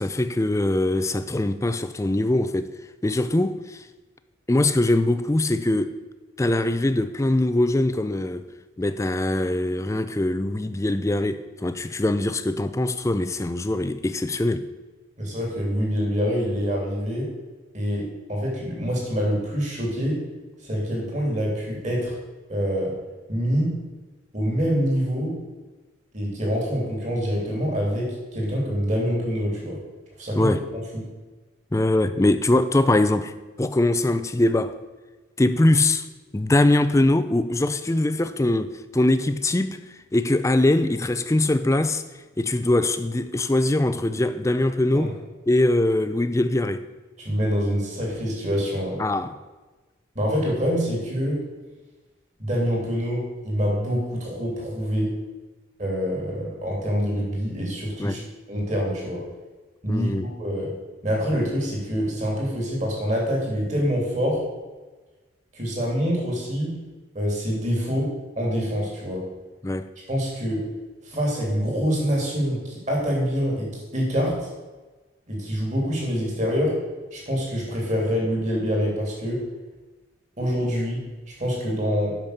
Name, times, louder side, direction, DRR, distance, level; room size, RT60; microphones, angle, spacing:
voice 1, 0.0-2.7 3.0-3.8 4.5-5.9 6.4-8.5 8.8-14.7 30.4-30.6 31.7-33.3 33.6-34.8 35.4-36.1 36.3-39.8 40.1-42.0 42.4-45.1 45.5-46.8 49.0-49.4 58.0-58.2 59.9-60.3 69.6-69.9, left 1 dB, 15° left, 0.4 m, -22 dB
voice 2, 15.2-17.3 17.7-20.2 20.6-22.1 22.5-22.9 23.3-23.7 24.3-25.4 26.1-29.8 30.2-30.6 30.9-31.0 44.9-45.1 47.2-49.0 50.1-51.4 52.4-55.1 55.8-58.2 58.5-59.3 59.8-60.7 61.0-64.4 65.5-66.8 67.1-69.3 70.1-70.7 71.0-74.5 75.3-76.8 77.1-79.4 80.4-82.2, equal, 35° right, 3.0 m, -25 dB
9.0 x 5.9 x 6.6 m
head